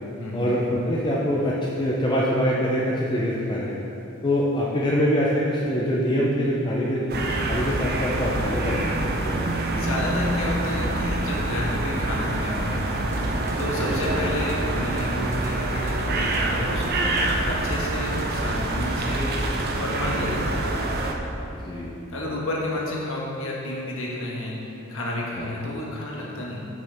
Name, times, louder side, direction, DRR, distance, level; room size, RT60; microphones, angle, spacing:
voice 1, 0.3-3.7 4.2-9.4 13.9-14.0 20.2-20.3 21.5-22.0 25.4-25.5, equal, 20° left, -5 dB, 0.6 m, -24 dB
sound 1, 7.1-21.1, right 2 dB, 45° right, 0.6 m, -26 dB
voice 2, 9.7-13.0 13.6-19.3 19.8-20.6 22.1-26.7, left 1 dB, 65° left, -3 dB, 1.5 m, -31 dB
sound 2, 13.1-18.6, right 1 dB, 15° right, 0.8 m, -40 dB
8.6 x 6.3 x 3.6 m, 2.9 s
head